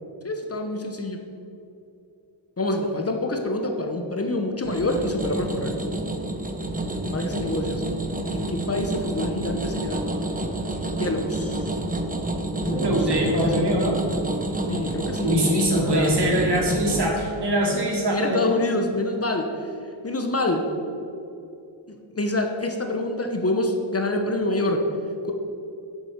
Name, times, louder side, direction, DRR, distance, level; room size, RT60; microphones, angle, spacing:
voice 1, 0.2-1.2 2.6-5.8 7.1-7.8 8.3-10.0 11.0-11.8 12.6-13.5 14.7-16.2 18.1-19.7 20.0-20.7 21.9-24.9, left 2 dB, 30° left, 3 dB, 0.9 m, -26 dB
sound 1, 4.6-17.1, right 1 dB, 20° right, 0.7 m, -29 dB
voice 2, 12.7-14.0 15.2-18.4, right 1 dB, 60° right, -2 dB, 2.6 m, -23 dB
8.4 x 7.7 x 6.5 m, 2.7 s
wide cardioid pair, 155°, 46 cm